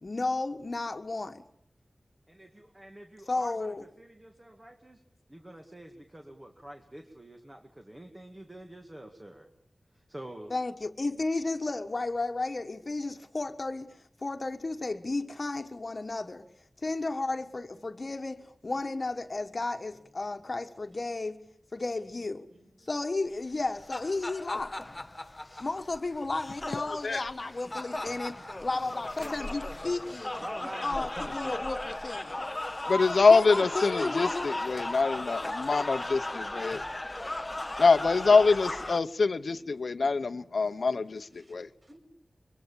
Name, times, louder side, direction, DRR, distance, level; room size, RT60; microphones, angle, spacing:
voice 1, 0.0-1.4 3.3-3.8 10.5-16.4 16.8-21.4 21.7-22.5 22.8-24.8 25.6-30.3 30.8-32.5 33.3-34.5, left 3 dB, 45° left, 1.5 m, -33 dB
voice 2, 2.3-5.0 5.3-9.5 9.9-10.5 30.4-31.7, right 1 dB, 20° right, 2.1 m, -46 dB
voice 3, 17.4-18.1 19.9-20.3 22.4-23.0 36.5-37.4 39.6-40.6 41.2-42.0, equal, 45° right, 7.7 m, -62 dB
sound 1, 23.5-39.0, left 1 dB, 20° left, 1.0 m, -36 dB
voice 4, 32.9-36.8 37.8-41.7, left 4 dB, 75° left, 0.9 m, -24 dB
24.5 x 24.0 x 7.2 m
wide cardioid pair, 95°, 0 cm